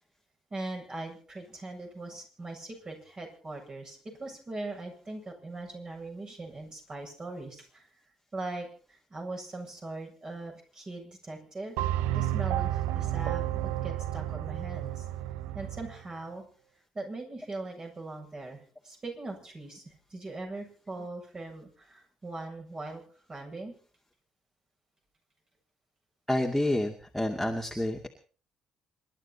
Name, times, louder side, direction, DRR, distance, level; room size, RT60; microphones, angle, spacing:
voice 1, 0.5-7.8 8.3-8.7 9.1-11.7 12.1-15.0 15.5-16.4 16.9-23.0 23.3-23.7, right 2 dB, 35° right, 2 dB, 7.7 m, -40 dB
sound 1, 11.8-16.0, right 13 dB, 75° right, 0.7 m, -31 dB
voice 2, 26.3-28.1, left 1 dB, ahead, 1 dB, 2.4 m, -29 dB
27.0 x 12.0 x 4.3 m, 0.41 s
hypercardioid pair, 50°, 2 cm